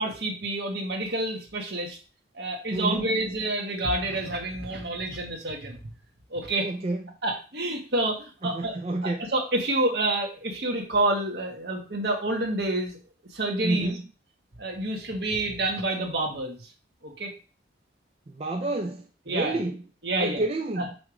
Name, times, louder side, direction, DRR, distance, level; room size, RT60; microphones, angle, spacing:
voice 1, 0.0-2.0 2.3-5.8 6.3-6.7 7.2-8.7 9.0-13.0 13.3-13.9 14.6-16.7 17.0-17.3 19.3-19.6 20.0-20.4 20.8-20.9, right 2 dB, 70° right, 1.6 m, -28 dB
voice 2, 2.7-3.1 6.6-7.0 8.4-9.3 13.6-14.0 18.3-19.8 20.1-20.9, right 2 dB, 35° right, 0.5 m, -29 dB
6.1 x 3.1 x 4.9 m
head